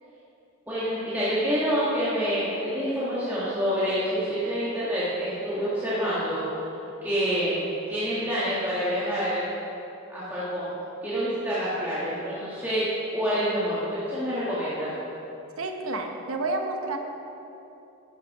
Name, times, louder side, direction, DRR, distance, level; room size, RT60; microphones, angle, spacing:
voice 1, 0.7-6.4 7.0-9.4 10.1-10.7 11.0-12.8 13.1-15.0, equal, 10° right, -11 dB, 1.6 m, -27 dB
voice 2, 15.6-17.0, right 2 dB, 75° right, 4 dB, 1.0 m, -30 dB
11.0 x 7.8 x 4.8 m, 2.9 s
head